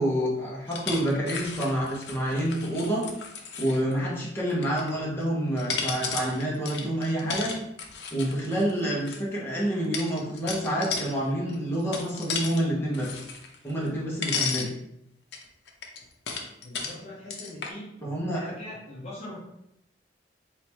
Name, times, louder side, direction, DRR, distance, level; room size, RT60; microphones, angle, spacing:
voice 1, 0.0-3.1 3.6-7.5 8.1-13.2 13.6-14.7 18.0-18.4, right 1 dB, 15° left, -5 dB, 1.1 m, -28 dB
sound 1, 0.7-3.9 4.5-5.2 5.6-9.2 9.9-11.1 11.5-12.6 12.9-14.0 14.2-14.7 15.3-16.9 17.3-17.7, left 5 dB, 75° left, 0.6 m, -34 dB
voice 2, 16.6-17.9 18.3-19.4, left 1 dB, 40° left, -6 dB, 0.8 m, -41 dB
3.4 x 2.8 x 4.6 m, 0.81 s
head